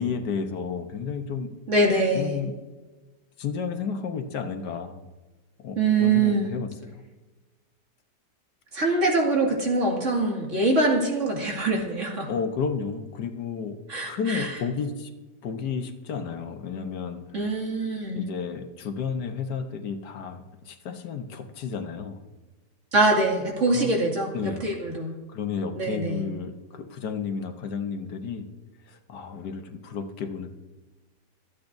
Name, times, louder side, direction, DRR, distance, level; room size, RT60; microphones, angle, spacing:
voice 1, 0.0-1.5 2.1-2.5 3.4-5.0 5.6-6.7 12.3-13.7 14.0-15.1 15.4-17.2 18.1-22.2 23.7-23.9 24.3-24.6 25.3-28.5 28.9-30.5, left 6 dB, 75° left, 6 dB, 1.6 m, -32 dB
voice 2, 1.7-2.4 5.8-6.6 8.7-12.3 13.9-14.6 17.3-18.3 22.9-25.1 25.7-26.2, right 2 dB, 45° right, -1 dB, 2.5 m, -24 dB
25.0 x 8.4 x 2.6 m, 1.2 s
omnidirectional pair, 1.8 m